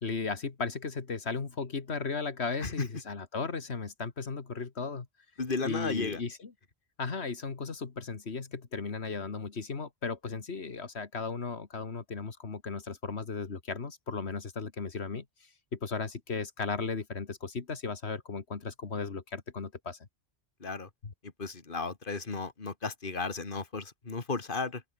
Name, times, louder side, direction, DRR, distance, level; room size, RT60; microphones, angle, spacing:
voice 1, 0.0-5.1 5.6-6.4 7.0-15.2 15.7-20.0, left 4 dB, 85° left, 2.1 m, -36 dB
voice 2, 5.4-6.2 20.6-20.9 21.2-24.8, left 4 dB, 55° left, 2.4 m, -34 dB
open air
omnidirectional pair, 1.1 m